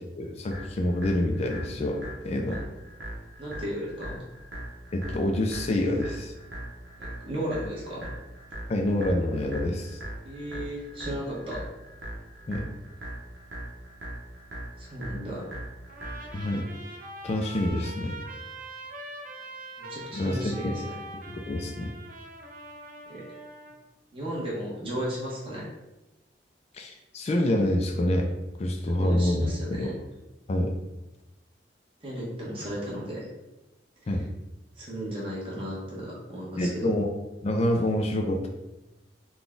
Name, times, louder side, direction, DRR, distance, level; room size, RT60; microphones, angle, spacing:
voice 1, 0.2-2.6 4.9-6.3 8.7-10.0 12.5-12.7 16.3-16.7 17.2-18.1 20.1-20.7 21.3-21.9 26.7-28.3 28.6-29.9 30.5-30.7 34.1-34.3 36.6-37.1 37.4-38.5, left 1 dB, 35° left, 2 dB, 0.4 m, -27 dB
sound 1, 0.5-16.5, right 1 dB, 70° right, 0.9 m, -41 dB
voice 2, 3.4-4.2 7.0-8.1 10.2-11.6 14.8-15.5 19.8-20.8 23.1-23.2 24.1-25.7 29.0-29.9 32.0-33.3 34.0-34.1 34.8-36.9, equal, 30° right, -6 dB, 1.2 m, -34 dB
Trumpet, 15.9-23.8, right 1 dB, 45° right, 0.5 m, -43 dB
3.8 x 2.3 x 3.7 m, 0.98 s
head